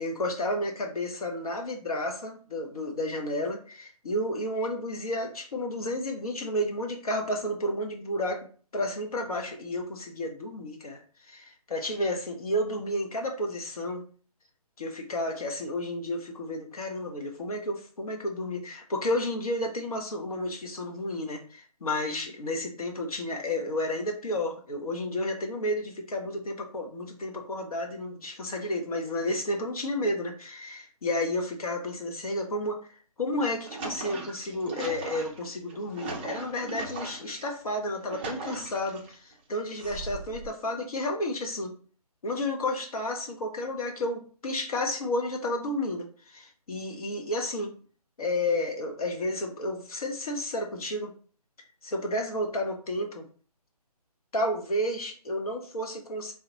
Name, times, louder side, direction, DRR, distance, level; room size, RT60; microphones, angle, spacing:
voice 1, 0.0-8.5 8.7-11.0 11.3-14.0 14.8-41.7 42.2-47.7 48.2-51.1 51.8-53.3 54.3-56.3, left 1 dB, 65° left, 3 dB, 0.8 m, -31 dB
sound 1, 33.3-37.4 37.9-39.1 39.8-40.5, right 3 dB, 15° right, 0.4 m, -39 dB
4.8 x 2.2 x 2.9 m, 0.42 s
figure-of-eight pair, 150°, 20 cm